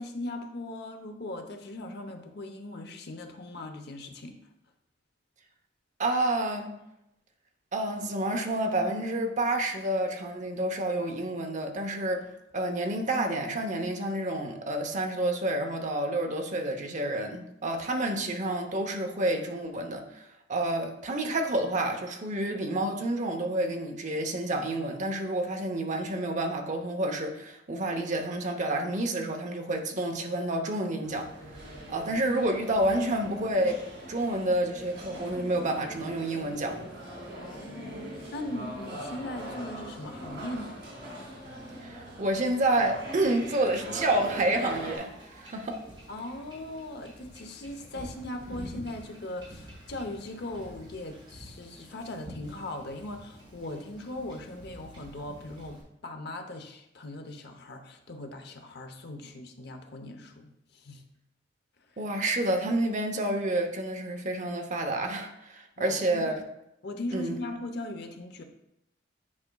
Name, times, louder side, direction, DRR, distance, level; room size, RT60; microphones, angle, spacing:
voice 1, 0.0-4.3 37.4-40.8 46.1-61.0 65.8-66.2 66.8-68.4, left 1 dB, 60° left, 5 dB, 0.8 m, -39 dB
voice 2, 6.0-6.8 7.7-12.2 12.5-20.2 20.5-31.3 31.9-33.8 34.1-36.9 41.8-45.8 62.0-66.3 67.1-67.3, right 1 dB, 40° right, 4 dB, 0.8 m, -29 dB
sound 1, 31.0-45.0, right 1 dB, 65° right, 2.5 m, -41 dB
Wind / Ocean / Boat Water vehicle, 44.2-55.8, equal, 25° right, 1.8 m, -48 dB
9.5 x 5.0 x 2.3 m, 0.82 s
head